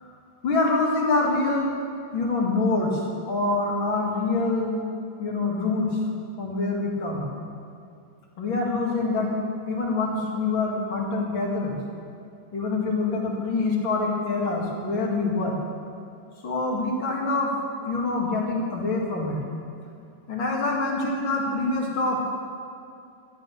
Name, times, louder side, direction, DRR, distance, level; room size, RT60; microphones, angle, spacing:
voice 1, 0.4-1.7 2.1-4.8 5.2-5.9 6.4-7.3 8.4-11.8 12.5-15.6 16.4-17.5 17.8-19.4 20.3-22.3, left 3 dB, 80° left, -1 dB, 2.8 m, -25 dB
12.5 x 11.0 x 6.7 m, 2.5 s
omnidirectional pair, 2.1 m